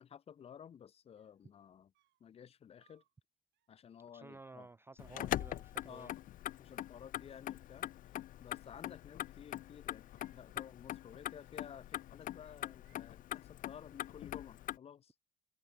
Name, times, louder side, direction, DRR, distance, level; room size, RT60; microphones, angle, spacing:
voice 1, 0.0-1.9 2.2-3.0 3.7-4.7 5.1-5.3 5.8-6.2 6.6-7.9 8.4-15.1, left 8 dB, 35° left, 0.9 m, -54 dB
sound 1, 1.2-1.5 1.9-2.3 2.8-3.2 3.5-3.8 4.3-4.6 5.4-6.3 6.5-7.2 8.5-9.1 9.6-10.5 11.0-11.3 11.6-12.0 12.4-13.2, right 16 dB, 90° right, 3.8 m, -80 dB
voice 2, 4.1-6.1, right 3 dB, 15° right, 0.4 m, -54 dB
Motor vehicle (road), 5.0-14.8, left 13 dB, 50° left, 0.5 m, -43 dB
cardioid pair, 160°, 17 cm